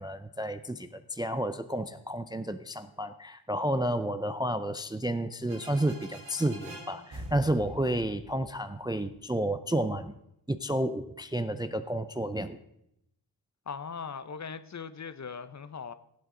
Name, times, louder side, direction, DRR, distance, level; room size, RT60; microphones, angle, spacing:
voice 1, 0.0-10.1 10.5-12.6, right 1 dB, 10° right, 0.4 m, -31 dB
sound 1, 5.5-9.1, right 1 dB, 85° right, 3.9 m, -45 dB
voice 2, 13.7-15.9, left 6 dB, 40° left, 0.6 m, -39 dB
16.5 x 8.0 x 3.7 m
wide cardioid pair, 120°, 45 cm